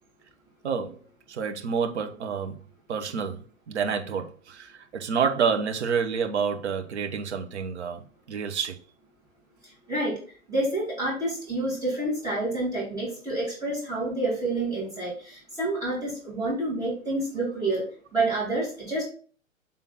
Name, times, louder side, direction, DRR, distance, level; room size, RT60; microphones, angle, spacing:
voice 1, 0.6-1.0 1.3-2.6 2.9-8.8, right 6 dB, 55° right, 1.1 m, -28 dB
voice 2, 10.5-15.1 15.6-17.8 18.1-19.0, right 2 dB, 10° right, 2.8 m, -28 dB
7.1 x 3.7 x 4.1 m
figure-of-eight pair, 115°, 40 cm